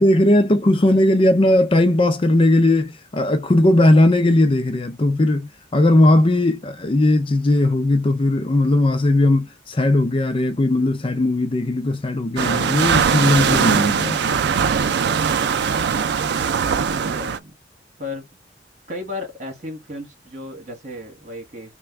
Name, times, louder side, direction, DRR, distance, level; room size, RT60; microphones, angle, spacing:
voice 1, 0.0-14.4, left 1 dB, 30° left, 0.5 m, -18 dB
sound 1, 12.4-17.4, right 6 dB, 65° right, 0.4 m, -20 dB
voice 2, 17.0-17.6 18.0-18.3 18.9-21.7, left 2 dB, 40° right, 1.6 m, -35 dB
3.3 x 2.2 x 3.2 m
head